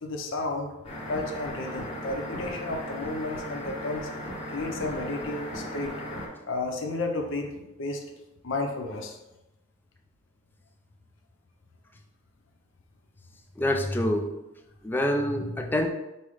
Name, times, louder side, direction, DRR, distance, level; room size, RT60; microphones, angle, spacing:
voice 1, 0.0-0.7 1.1-4.1 4.5-6.0 6.5-8.0 8.4-9.2, left 2 dB, 70° left, 2 dB, 0.6 m, -32 dB
sound 1, 0.8-6.3, equal, 25° left, 1.0 m, -36 dB
voice 2, 13.6-14.3 14.8-15.9, left 1 dB, 10° left, 4 dB, 0.3 m, -26 dB
5.4 x 2.0 x 4.8 m, 0.96 s
head